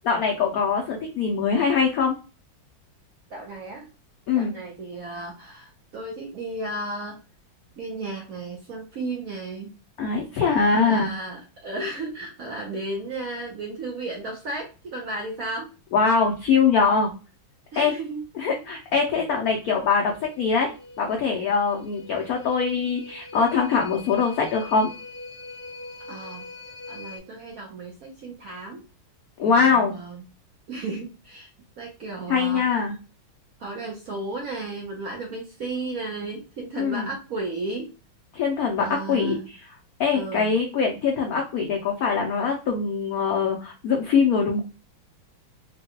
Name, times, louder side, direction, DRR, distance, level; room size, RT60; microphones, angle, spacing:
voice 1, 0.0-2.2 4.3-4.5 10.0-11.1 15.9-17.1 17.8-17.9 18.3-20.7 21.0-24.9 29.4-29.9 32.3-32.9 36.8-37.1 38.3-39.6 40.0-44.6, left 5 dB, 75° left, 0 dB, 0.8 m, -22 dB
voice 2, 3.3-3.9 4.3-7.2 7.8-9.7 10.4-15.7 17.7-18.6 26.0-26.5 26.9-28.8 29.4-30.3 30.7-31.5 31.8-32.7 33.6-37.9 38.8-39.5 40.1-40.5, right 2 dB, 65° right, -1 dB, 0.9 m, -34 dB
sound 1, 19.7-27.2, left 3 dB, 25° left, 0.6 m, -43 dB
3.7 x 2.2 x 2.8 m, 0.32 s
omnidirectional pair, 2.2 m